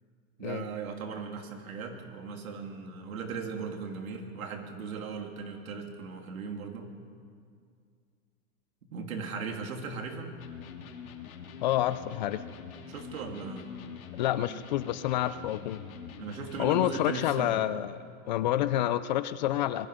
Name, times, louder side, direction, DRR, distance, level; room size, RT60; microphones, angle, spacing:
voice 1, 0.4-6.9 8.9-10.3 12.9-13.7 16.2-17.6, right 5 dB, 85° right, 3 dB, 3.4 m, -38 dB
Electric guitar, 10.4-17.7, left 7 dB, 85° left, 2.8 m, -45 dB
voice 2, 11.6-12.4 14.1-15.8 16.6-18.0 18.3-19.9, left 13 dB, 35° left, 14 dB, 0.5 m, -28 dB
25.5 x 21.0 x 5.1 m, 2.2 s
supercardioid pair, 160°, 41 cm